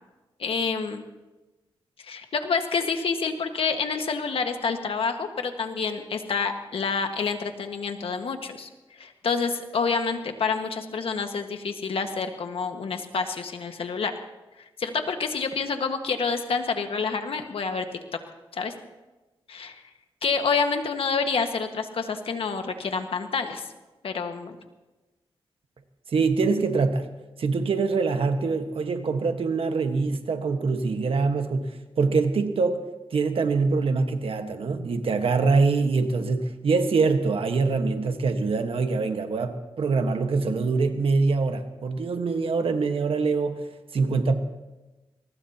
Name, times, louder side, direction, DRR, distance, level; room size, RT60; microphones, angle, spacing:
voice 1, 0.4-1.0 2.0-8.7 9.0-14.1 14.8-17.8 18.5-18.7 19.5-19.8 20.2-23.6 24.0-24.6, left 5 dB, 80° left, 5 dB, 1.6 m, -28 dB
voice 2, 26.1-27.1 27.4-32.8 33.1-43.6 43.9-44.4, right 4 dB, 75° right, 7 dB, 1.4 m, -24 dB
23.0 x 19.5 x 2.9 m, 1.1 s
cardioid pair, 75°, 9 cm